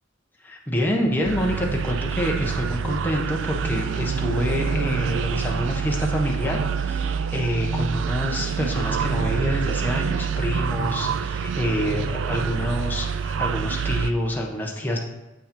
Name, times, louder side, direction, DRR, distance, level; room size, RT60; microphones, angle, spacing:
voice 1, 0.4-15.0, equal, 10° left, -1 dB, 0.9 m, -27 dB
sound 1, 1.2-14.1, right 6 dB, 70° right, 0.4 m, -26 dB
7.0 x 5.4 x 5.2 m, 1.0 s
head